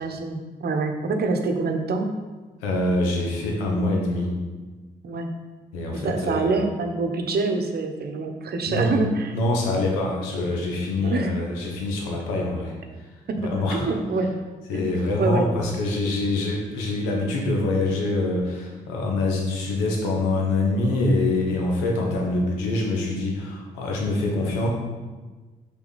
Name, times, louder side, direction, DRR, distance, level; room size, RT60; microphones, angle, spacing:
voice 1, 0.0-2.1 5.0-5.3 5.9-9.3 11.0-11.3 13.3-14.3 14.7-14.9 15.2-15.8, right 3 dB, 60° right, 5 dB, 0.9 m, -26 dB
voice 2, 2.6-4.4 5.7-6.6 8.7-9.0 9.3-12.7 13.5-13.9 14.7-24.7, left 2 dB, 90° left, 0 dB, 1.1 m, -25 dB
5.9 x 4.1 x 4.1 m, 1.3 s
hypercardioid pair, 40°, 19 cm